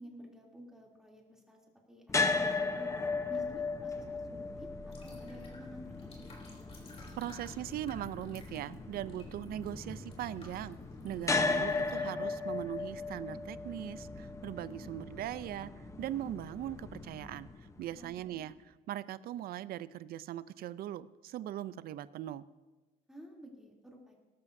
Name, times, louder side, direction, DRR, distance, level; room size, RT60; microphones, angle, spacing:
voice 1, 0.0-1.6 1.9-2.9 3.3-6.3 18.0-18.4 23.1-24.1, equal, 5° right, -2 dB, 3.0 m, -52 dB
sound 1, 2.1-18.2, left 3 dB, 15° left, 0.9 m, -37 dB
sound 2, 4.8-12.0, left 2 dB, 35° left, 3.4 m, -54 dB
voice 2, 7.2-10.8 11.0-22.5, right 12 dB, 65° right, 16 dB, 0.5 m, -40 dB
18.0 x 13.5 x 2.7 m, 1.2 s
cardioid pair, 110°, 17 cm